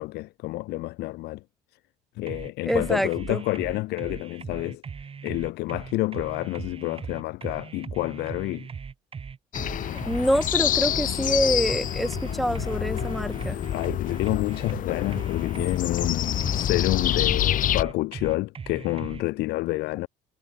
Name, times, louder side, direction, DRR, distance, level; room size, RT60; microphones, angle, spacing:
voice 1, 0.0-1.4 2.2-4.8 5.2-8.7 13.5-20.1, left 19 dB, 75° left, 0.4 m, -29 dB
sound 1, 2.3-19.2, right 6 dB, 35° right, 6.4 m, -39 dB
voice 2, 2.7-3.4 10.1-13.6, equal, ahead, 0.4 m, -26 dB
sound 2, 9.5-17.8, left 11 dB, 55° left, 0.8 m, -27 dB
cardioid pair, 110°, 17 cm